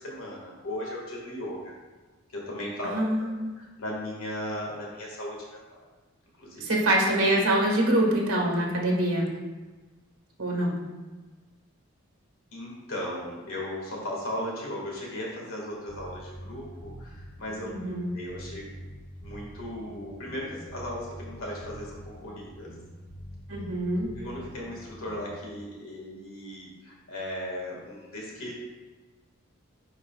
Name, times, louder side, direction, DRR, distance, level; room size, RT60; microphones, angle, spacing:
voice 1, 0.0-1.7 2.3-2.9 3.6-5.6 6.4-6.6 12.5-17.7 18.1-18.7 19.2-22.7 24.1-28.6, left 1 dB, 75° left, -3 dB, 1.8 m, -37 dB
voice 2, 2.8-3.5 6.6-9.3 10.4-10.8 17.6-18.1 23.5-24.1, right 1 dB, 90° right, -1 dB, 1.4 m, -25 dB
sound 1, 15.9-25.5, equal, 10° left, 0.9 m, -45 dB
9.5 x 5.0 x 2.3 m, 1.3 s
head